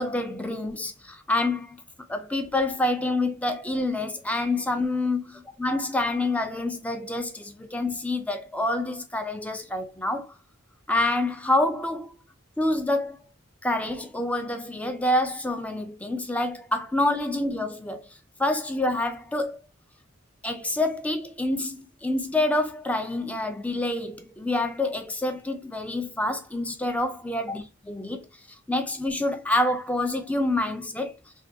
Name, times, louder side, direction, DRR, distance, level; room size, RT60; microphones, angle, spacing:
voice 1, 0.0-1.8 2.1-5.2 5.6-10.3 10.9-12.1 12.6-13.2 13.6-18.0 18.4-19.6 20.4-27.6 27.9-28.3 28.7-31.2, left 2 dB, 5° left, 0.3 m, -27 dB
3.3 x 2.2 x 2.7 m
head